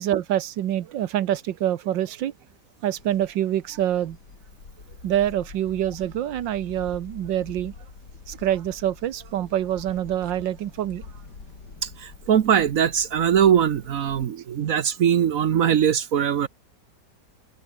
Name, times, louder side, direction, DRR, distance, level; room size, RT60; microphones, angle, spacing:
voice 1, 0.0-2.3 2.8-4.2 5.0-7.7 8.3-11.1, right 11 dB, 90° right, 1.7 m, -26 dB
sound 1, 2.9-14.3, left 4 dB, 65° left, 3.7 m, -45 dB
voice 2, 11.8-16.5, right 9 dB, 55° right, 1.1 m, -21 dB
open air
omnidirectional pair, 1.9 m